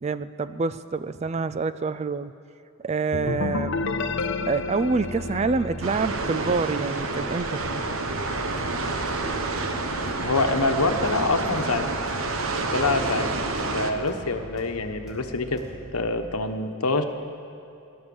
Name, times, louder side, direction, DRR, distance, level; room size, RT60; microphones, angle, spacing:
voice 1, 0.0-2.3 2.8-3.9 4.5-7.6, right 4 dB, 30° right, 13 dB, 0.3 m, -27 dB
sound 1, 3.1-6.8, left 3 dB, 55° left, 0.7 m, -30 dB
sound 2, 5.8-13.9, right 3 dB, 70° right, 1.1 m, -28 dB
sound 3, 8.1-16.1, equal, ahead, 3.2 m, -43 dB
voice 2, 10.0-11.9 12.7-13.3 13.7-15.6 15.9-17.0, left 3 dB, 90° left, 7 dB, 1.1 m, -25 dB
17.5 x 11.5 x 7.0 m, 2.7 s
head